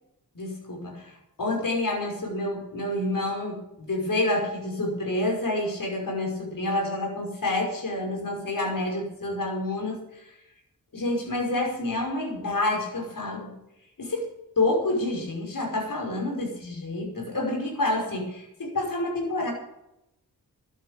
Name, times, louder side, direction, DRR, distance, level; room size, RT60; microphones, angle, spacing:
voice 1, 0.3-1.1 1.4-10.3 10.9-13.6 14.0-14.3 14.6-19.5, left 2 dB, 65° left, 1 dB, 5.6 m, -28 dB
12.0 x 9.1 x 8.9 m, 0.86 s
cardioid pair, 65°, 36 cm